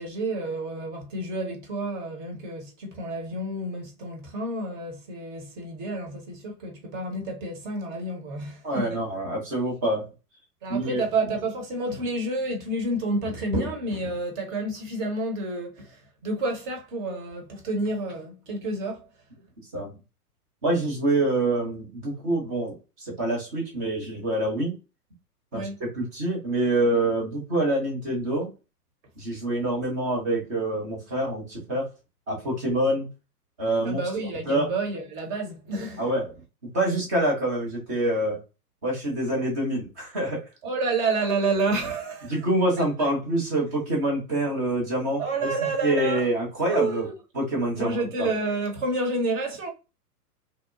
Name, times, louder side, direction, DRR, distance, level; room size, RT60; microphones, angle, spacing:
voice 1, 0.0-9.0 10.6-19.1 25.5-25.8 33.8-36.0 40.6-42.4 42.8-42.9 45.2-46.3 46.7-47.1 47.8-49.7, right 2 dB, 30° right, 0.9 m, -29 dB
voice 2, 8.6-10.1 10.7-11.0 19.7-19.9 20.6-24.8 25.5-28.5 29.2-31.9 32.3-33.1 33.6-34.0 34.5-34.7 36.0-36.3 36.7-38.4 38.8-40.4 42.3-47.1 47.4-48.3, right 1 dB, 15° right, 0.3 m, -26 dB
2.9 x 2.0 x 2.3 m
figure-of-eight pair, 115°, 47 cm